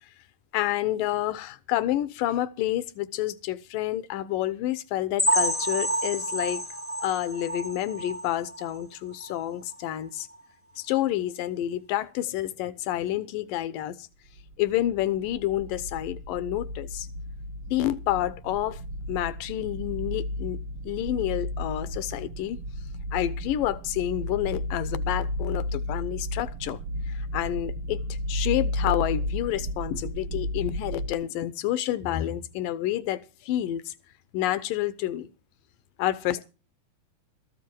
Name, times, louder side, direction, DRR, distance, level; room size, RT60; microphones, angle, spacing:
voice 1, 0.5-6.6 7.0-10.3 10.8-14.0 14.6-17.1 17.7-18.8 19.1-20.6 20.8-22.6 23.1-26.8 27.3-28.0 28.3-33.9 34.3-35.3 36.0-36.4, left 13 dB, 80° left, 2.5 m, -29 dB
sound 1, 5.2-8.8 9.2-9.4 9.7-9.8 10.3-10.4, right 1 dB, 15° left, 0.4 m, -29 dB
sound 2, 14.4-31.1, left 1 dB, 70° right, 1.3 m, -33 dB
14.0 x 12.5 x 4.6 m
omnidirectional pair, 4.0 m